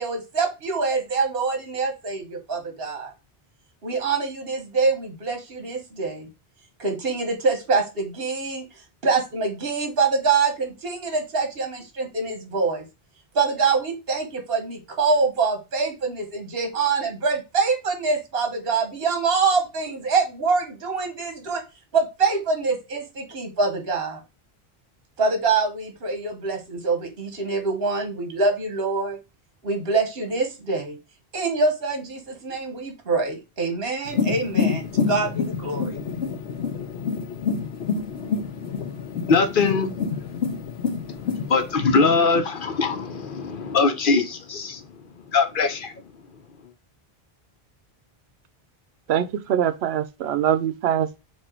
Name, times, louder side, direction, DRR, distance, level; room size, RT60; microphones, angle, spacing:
voice 1, 0.0-3.1 3.8-6.3 6.8-8.6 9.0-12.8 13.3-21.6 21.9-24.2 25.2-29.2 29.6-31.0 31.3-36.0, right 4 dB, 70° right, 1.4 m, -25 dB
sound 1, 34.1-41.7, left 6 dB, 85° left, 1.0 m, -27 dB
voice 2, 36.9-46.2 46.6-46.7, left 4 dB, 60° left, 0.9 m, -24 dB
voice 3, 49.1-51.2, right 10 dB, 85° right, 0.8 m, -23 dB
4.4 x 2.5 x 4.3 m
omnidirectional pair, 1.0 m